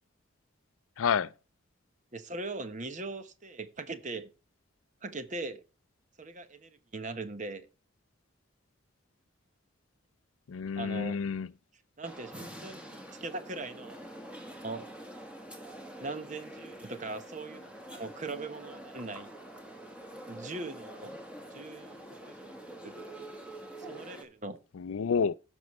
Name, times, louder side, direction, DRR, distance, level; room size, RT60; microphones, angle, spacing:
voice 1, 1.0-1.3 10.5-11.5 24.7-25.3, left 6 dB, 85° left, 0.4 m, -29 dB
voice 2, 2.1-4.3 5.0-5.6 6.2-7.7 10.8-11.2 12.0-14.2 14.6-14.8 16.0-19.3 20.3-21.2 21.5-22.9 23.9-24.6, right 3 dB, 35° right, 1.0 m, -40 dB
sound 1, 12.0-24.2, right 1 dB, 5° right, 1.6 m, -46 dB
17.5 x 6.3 x 3.1 m
head